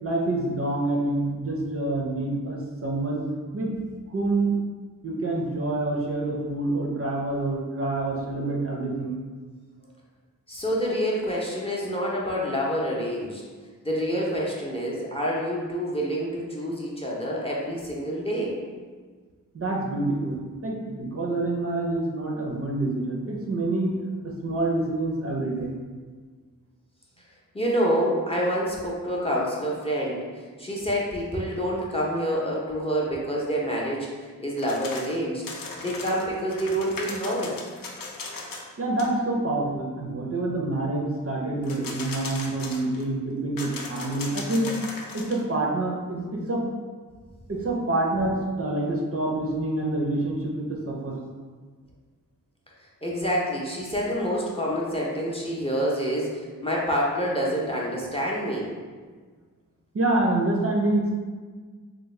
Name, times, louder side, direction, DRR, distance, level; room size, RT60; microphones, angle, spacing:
voice 1, 0.0-3.3 3.5-3.7 4.1-4.5 5.0-9.2 19.5-23.9 24.2-25.7 38.8-44.7 45.1-46.6 47.5-51.2 59.9-61.1, right 2 dB, 45° right, -2 dB, 0.5 m, -27 dB
voice 2, 10.5-13.4 13.8-18.5 27.5-35.4 35.8-37.5 53.0-58.7, equal, 15° left, -4 dB, 0.5 m, -27 dB
sound 1, 34.6-35.2 35.4-38.7 39.0-39.1 41.6-43.0 43.6-45.4, left 3 dB, 80° left, 0.5 m, -37 dB
3.4 x 2.1 x 3.1 m, 1.5 s
wide cardioid pair, 105°, 34 cm